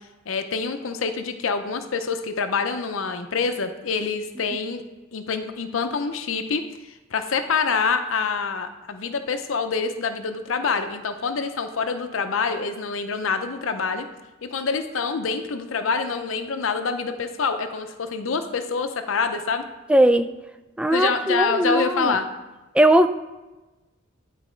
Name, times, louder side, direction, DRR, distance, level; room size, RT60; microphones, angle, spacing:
voice 1, 0.3-4.8 5.1-14.1 14.4-19.6 20.9-22.3, left 5 dB, 85° left, 8 dB, 0.6 m, -26 dB
voice 2, 19.9-20.3 20.8-22.2 22.7-23.1, right 1 dB, 5° right, 9 dB, 0.4 m, -18 dB
10.5 x 4.1 x 5.0 m, 1.1 s
head